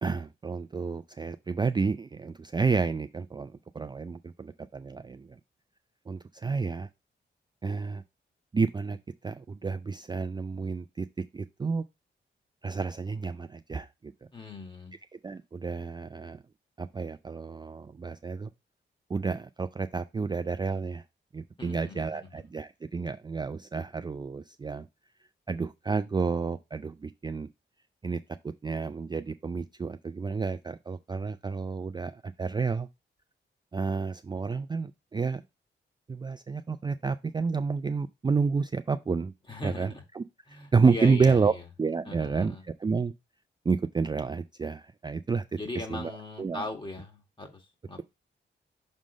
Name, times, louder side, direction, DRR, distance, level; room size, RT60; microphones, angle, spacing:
voice 1, 0.0-5.4 6.1-6.9 7.6-8.0 8.5-9.0 9.2-11.1 11.3-11.8 12.6-14.1 15.2-16.4 16.8-18.5 19.1-21.0 21.3-24.9 25.5-27.5 28.0-32.9 33.7-35.4 36.1-39.3 39.6-41.5 41.8-43.1 43.7-46.1 46.4-46.6, right 4 dB, 25° right, 0.3 m, -30 dB
voice 2, 14.3-14.9 21.6-22.4 39.5-40.0 40.5-41.6 42.1-42.6 45.5-48.0, left 2 dB, 25° left, 2.0 m, -39 dB
6.3 x 3.7 x 5.2 m
cardioid pair, 70°, 19 cm